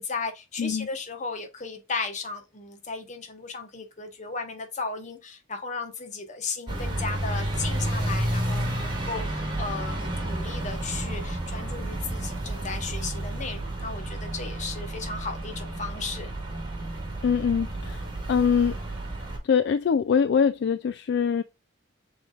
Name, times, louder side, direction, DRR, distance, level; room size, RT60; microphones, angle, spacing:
voice 1, 0.0-16.3, left 4 dB, 40° left, 1.0 m, -35 dB
sound 1, 6.7-19.4, right 1 dB, 25° right, 1.5 m, -31 dB
voice 2, 17.2-18.8 19.4-21.4, left 6 dB, 60° left, 0.3 m, -23 dB
6.0 x 3.4 x 2.4 m
head